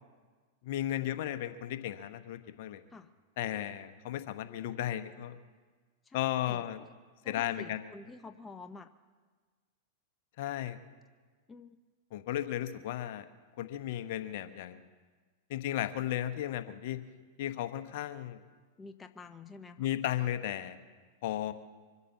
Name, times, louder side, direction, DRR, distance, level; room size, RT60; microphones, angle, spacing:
voice 1, 0.6-2.8 3.4-5.4 6.1-6.8 7.3-7.9 10.4-10.8 12.1-13.3 13.6-14.8 15.5-17.0 17.4-18.4 19.8-20.8 21.2-21.5, left 12 dB, 60° left, 10 dB, 1.0 m, -35 dB
voice 2, 6.0-6.6 7.2-8.9 11.5-11.8 18.8-19.9, left 4 dB, 15° left, 9 dB, 0.7 m, -49 dB
24.5 x 8.3 x 7.1 m, 1.4 s
hypercardioid pair, 105°, 0 cm